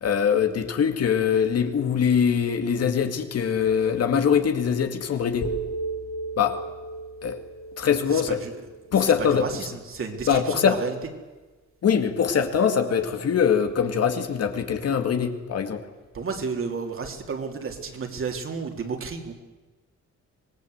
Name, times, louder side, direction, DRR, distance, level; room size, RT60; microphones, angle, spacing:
voice 1, 0.0-5.5 6.4-6.6 7.2-7.4 7.8-8.4 8.9-9.4 10.3-10.8 11.8-15.8, left 7 dB, 55° left, 7 dB, 2.2 m, -23 dB
sound 1, 5.4-9.5, right 2 dB, 90° left, 4.7 m, -35 dB
voice 2, 8.1-8.6 8.9-10.9 16.1-19.3, right 5 dB, 45° right, 4 dB, 3.3 m, -32 dB
26.0 x 20.5 x 8.0 m, 1.2 s
wide cardioid pair, 160°, 30 cm